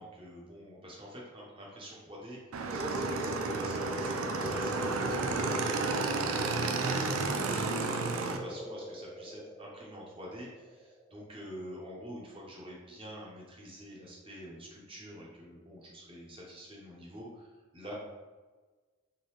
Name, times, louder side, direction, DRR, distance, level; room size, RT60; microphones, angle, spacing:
voice 1, 0.0-2.4 2.7-17.9, equal, 25° right, -4 dB, 1.0 m, -47 dB
Motorcycle / Engine, 2.5-8.4, right 4 dB, 85° right, 0.4 m, -32 dB
sound 1, 2.7-12.0, left 1 dB, 5° left, 0.3 m, -40 dB
3.8 x 3.8 x 3.1 m, 1.3 s
head